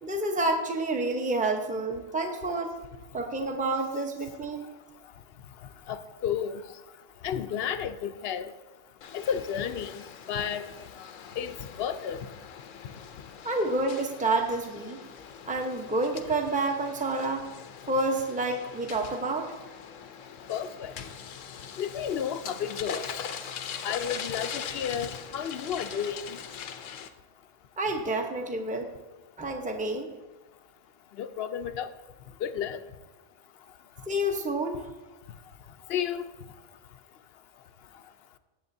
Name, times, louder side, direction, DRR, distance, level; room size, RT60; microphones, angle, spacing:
voice 1, 0.0-2.7 3.1-4.7 13.4-15.0 15.4-17.5 17.9-19.5 27.8-28.9 29.4-30.1 34.1-34.8, right 2 dB, 5° right, 3 dB, 0.7 m, -29 dB
voice 2, 5.9-6.6 7.2-8.5 9.1-10.6 11.4-12.3 20.5-21.0 21.8-23.3 23.8-26.4 31.2-31.9 32.4-32.8 35.9-36.3, left 8 dB, 65° left, 11 dB, 0.7 m, -32 dB
sound 1, 9.0-27.1, left 7 dB, 85° left, 1.1 m, -42 dB
18.0 x 7.6 x 2.7 m, 1.2 s
omnidirectional pair, 1.3 m